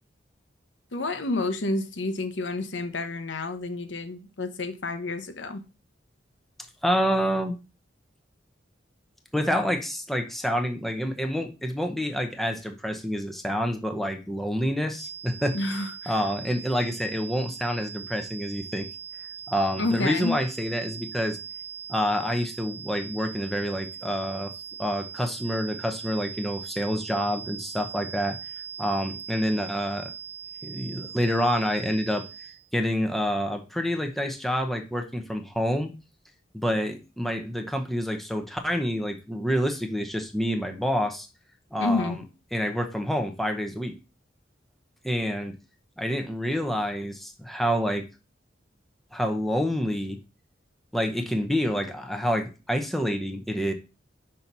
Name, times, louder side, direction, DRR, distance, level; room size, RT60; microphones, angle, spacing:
voice 1, 0.9-5.6 15.5-16.2 19.8-20.4 41.8-42.2, left 2 dB, 75° left, 0.9 m, -29 dB
voice 2, 6.8-7.5 9.3-15.6 16.1-18.9 19.5-21.4 21.9-24.5 24.8-28.4 28.8-30.1 30.6-32.2 32.7-35.9 36.5-41.3 41.7-42.2 42.5-43.9 45.0-45.5 46.0-48.0 49.1-50.2 50.9-53.7, equal, ahead, 0.8 m, -27 dB
sound 1, 14.9-32.7, right 7 dB, 85° right, 1.3 m, -40 dB
5.6 x 4.4 x 5.4 m
head